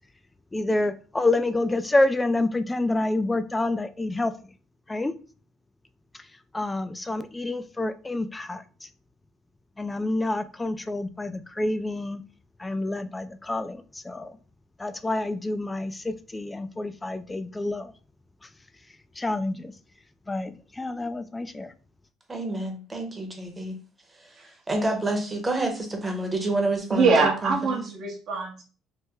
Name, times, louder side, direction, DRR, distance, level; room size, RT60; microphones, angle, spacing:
voice 1, 0.5-4.3 4.9-5.1 6.5-8.9 9.8-12.2 12.6-14.4 14.8-17.9 18.4-18.5 19.2-19.7 20.3-21.7, left 2 dB, 15° left, 0.3 m, -28 dB
voice 2, 22.3-23.8 24.1-27.8, right 2 dB, 15° right, 0.8 m, -29 dB
voice 3, 26.9-28.6, right 4 dB, 60° right, 0.7 m, -23 dB
3.0 x 2.0 x 3.4 m
cardioid pair, 110°, 0 cm